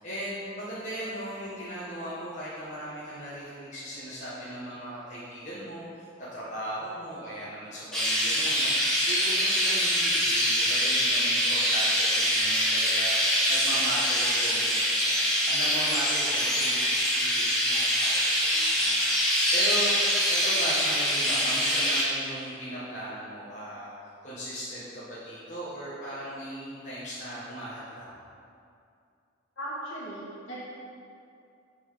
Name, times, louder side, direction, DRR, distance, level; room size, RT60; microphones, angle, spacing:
voice 1, 0.0-23.9 24.2-28.2, equal, 35° left, -11 dB, 1.5 m, -38 dB
Chirp tweet, 7.9-22.0, equal, 5° left, 1.9 m, -24 dB
voice 2, 29.6-30.6, right 1 dB, 80° left, -8 dB, 1.9 m, -37 dB
8.2 x 4.4 x 5.7 m, 2.4 s
head